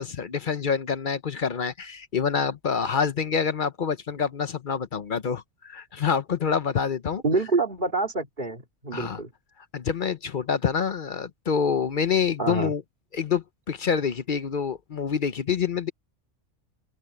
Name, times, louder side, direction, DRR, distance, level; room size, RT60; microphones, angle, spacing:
voice 1, 0.0-7.2 8.9-9.2 9.7-12.8 13.1-15.9, left 6 dB, 50° left, 0.8 m, -27 dB
voice 2, 7.2-9.3 12.4-12.7, right 3 dB, 45° right, 2.8 m, -27 dB
open air
omnidirectional pair, 1.2 m